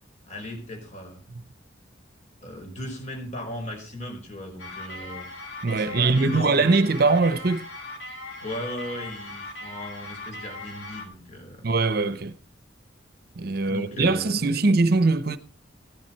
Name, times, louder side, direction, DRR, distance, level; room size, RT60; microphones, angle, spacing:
voice 1, 0.2-1.2 2.4-5.3 5.7-6.7 8.4-11.6 13.6-14.4, equal, 40° left, 4.9 m, -37 dB
sound 1, 4.6-11.1, left 2 dB, 70° left, 3.1 m, -39 dB
voice 2, 5.6-7.7 11.6-12.3 13.4-15.4, right 3 dB, 55° right, 0.8 m, -22 dB
15.0 x 10.5 x 4.5 m
head